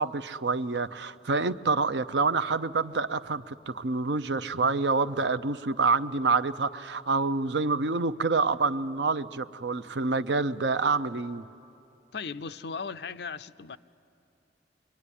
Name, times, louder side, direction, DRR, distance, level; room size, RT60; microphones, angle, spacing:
voice 1, 0.0-11.4, right 4 dB, 85° right, 0.7 m, -27 dB
voice 2, 12.1-13.8, left 5 dB, 65° left, 0.6 m, -37 dB
25.5 x 23.0 x 10.0 m
head